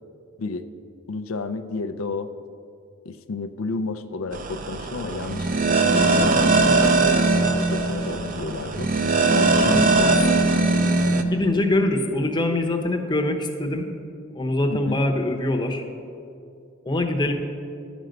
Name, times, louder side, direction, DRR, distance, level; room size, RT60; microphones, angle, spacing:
voice 1, 0.4-0.7 1.1-2.4 3.0-6.8 7.0-8.9 9.3-10.4 14.7-15.0, left 3 dB, 85° left, 8 dB, 0.5 m, -32 dB
sound 1, 4.3-11.2, right 3 dB, 40° right, 0.6 m, -20 dB
voice 2, 11.3-13.9 14.3-15.8 16.9-17.3, left 1 dB, 20° left, 3 dB, 0.8 m, -23 dB
11.0 x 5.2 x 7.8 m, 2.5 s
head